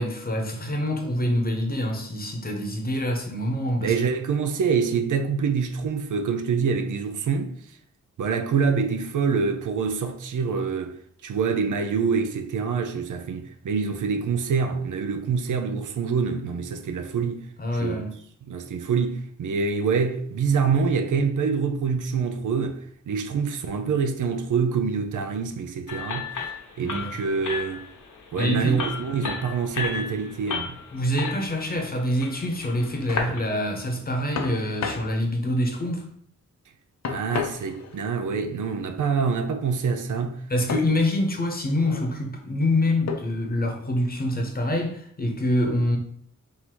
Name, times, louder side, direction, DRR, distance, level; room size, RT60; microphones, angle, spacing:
voice 1, 0.0-3.9 17.6-18.1 26.8-27.2 28.4-28.8 30.9-36.1 40.5-46.0, left 1 dB, 30° left, 0.9 m, -26 dB
voice 2, 3.8-7.6 8.2-10.9 11.2-17.4 17.8-18.0 18.5-22.8 23.1-26.3 26.8-27.9 28.3-30.8 37.1-40.3, right 5 dB, 80° right, 0.6 m, -26 dB
sound 1, 25.9-33.4, left 5 dB, 80° left, 1.0 m, -34 dB
sound 2, 32.7-33.3 34.3-35.1 37.0-38.1 40.7-40.9 41.7-42.1 43.1-43.5, left 6 dB, 60° left, 0.6 m, -33 dB
3.8 x 2.7 x 4.5 m
wide cardioid pair, 115°, 30 cm